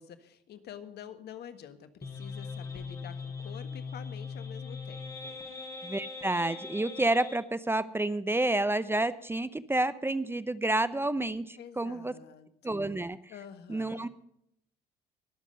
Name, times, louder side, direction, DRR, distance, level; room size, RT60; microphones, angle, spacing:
voice 1, 0.0-5.4 11.6-12.5 13.3-14.1, left 9 dB, 60° left, 10 dB, 1.5 m, -48 dB
sound 1, 2.0-7.4, left 4 dB, 20° left, 5.2 m, -40 dB
voice 2, 5.8-12.1 12.6-13.2 13.7-14.1, right 2 dB, 10° right, 15 dB, 0.7 m, -29 dB
21.5 x 7.5 x 5.3 m, 0.75 s
hypercardioid pair, 65°, 19 cm